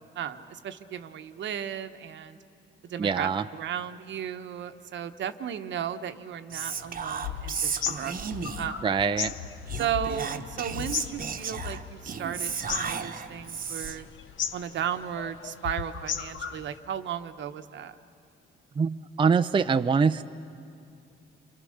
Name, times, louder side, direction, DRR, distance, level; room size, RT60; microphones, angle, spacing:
voice 1, 0.1-2.4 2.8-8.8 9.7-14.1 14.5-18.0, right 9 dB, 65° right, 9 dB, 1.1 m, -35 dB
voice 2, 3.0-3.5 8.8-9.3 18.8-20.2, right 5 dB, 25° right, 9 dB, 0.5 m, -24 dB
Whispering, 6.5-8.8 9.7-14.1, right 6 dB, 45° right, 1.1 m, -34 dB
sound 1, 6.8-16.8, left 9 dB, 75° left, 1.0 m, -37 dB
28.5 x 25.5 x 6.6 m, 2.4 s
cardioid pair, 90°, 20 cm